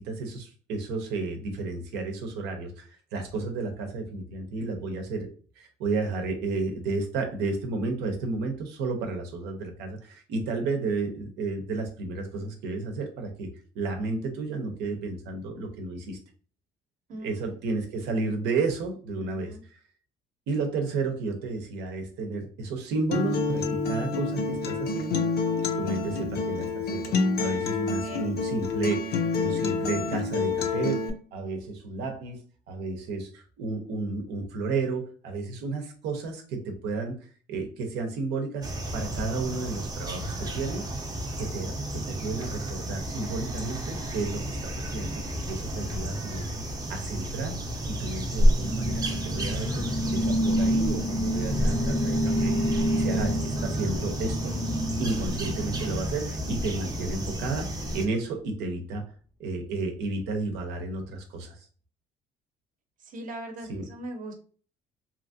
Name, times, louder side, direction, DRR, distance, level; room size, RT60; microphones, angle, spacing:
voice 1, 0.0-5.3 5.6-13.5 13.7-16.2 17.2-19.8 20.5-25.2 25.8-32.4 32.7-37.2 37.5-40.9 41.4-46.6 46.9-47.6 47.8-54.5 55.0-59.0 59.4-61.6 63.7-63.9, right 3 dB, 90° right, 4 dB, 0.7 m, -32 dB
voice 2, 17.1-17.4 19.2-19.6 27.8-28.3 63.0-64.3, right 1 dB, 50° right, 4 dB, 0.7 m, -40 dB
Acoustic guitar, 23.1-31.1, left 4 dB, 70° left, 0.5 m, -28 dB
sound 1, 38.6-58.1, equal, 20° right, 0.6 m, -31 dB
sound 2, 48.6-56.4, equal, 25° left, 0.4 m, -29 dB
2.8 x 2.5 x 2.6 m, 0.41 s
cardioid pair, 110°, 17 cm